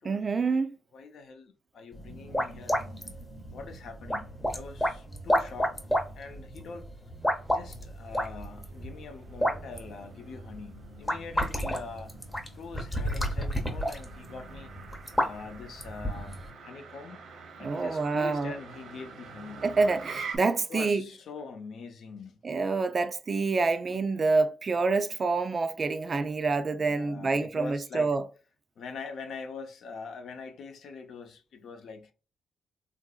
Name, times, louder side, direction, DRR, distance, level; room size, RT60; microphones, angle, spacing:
voice 1, 0.0-0.8 17.6-18.5 19.6-21.1 22.4-28.2, right 4 dB, 35° right, 0.4 m, -27 dB
voice 2, 0.9-2.9 3.5-5.8 6.2-6.9 7.5-12.1 12.5-14.7 15.2-17.2 17.6-19.7 20.7-22.4 23.9-24.0 26.7-28.1 28.8-32.1, left 4 dB, 70° left, 0.7 m, -43 dB
sound 1, 1.9-16.5, equal, 10° left, 0.7 m, -32 dB
Motor vehicle (road), 7.3-20.4, right 4 dB, 80° right, 0.9 m, -47 dB
3.7 x 2.6 x 2.3 m
wide cardioid pair, 145°, 0 cm